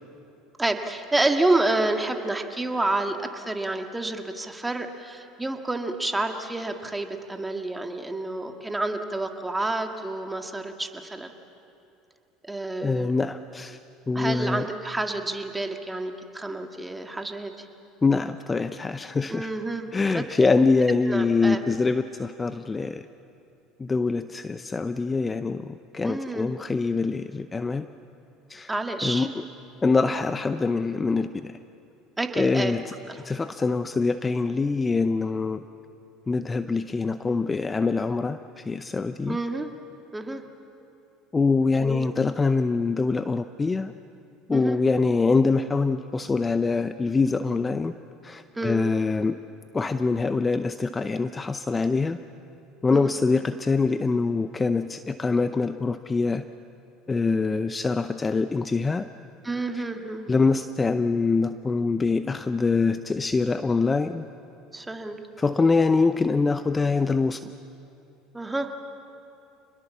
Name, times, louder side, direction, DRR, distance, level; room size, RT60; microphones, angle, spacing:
voice 1, 0.6-11.3 12.4-13.1 14.1-17.5 19.3-20.5 21.1-21.6 26.0-26.5 28.7-29.3 32.2-32.8 33.1-33.2 39.3-39.7 40.1-40.4 41.8-42.1 44.5-44.8 48.5-48.9 52.9-53.1 59.4-60.3 64.7-65.2 68.3-68.7, right 2 dB, 10° right, 5 dB, 2.0 m, -29 dB
voice 2, 12.8-13.8 14.1-14.7 18.0-19.5 19.9-23.0 23.8-27.9 28.5-28.7 29.0-29.4 29.8-31.5 32.4-32.8 33.2-35.6 36.3-39.4 41.3-43.9 44.5-47.9 48.2-49.4 49.7-52.2 52.8-56.4 57.1-59.1 60.3-64.2 65.4-67.4, left 4 dB, 20° left, 11 dB, 0.7 m, -24 dB
27.5 x 21.0 x 7.3 m, 2.7 s
hypercardioid pair, 80°, 0 cm